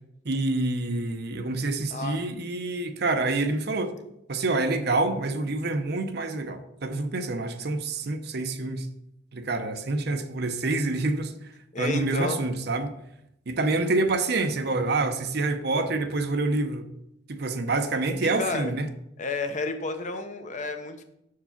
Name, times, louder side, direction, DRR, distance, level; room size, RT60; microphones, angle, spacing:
voice 1, 0.2-3.9 4.3-8.9 9.3-11.3 11.8-12.9 13.5-16.9 17.3-18.9, right 2 dB, 60° right, 0.7 m, -27 dB
voice 2, 1.9-2.2 11.7-12.4 18.2-18.7 19.2-21.0, left 3 dB, 40° left, 0.8 m, -31 dB
6.8 x 4.7 x 5.7 m
head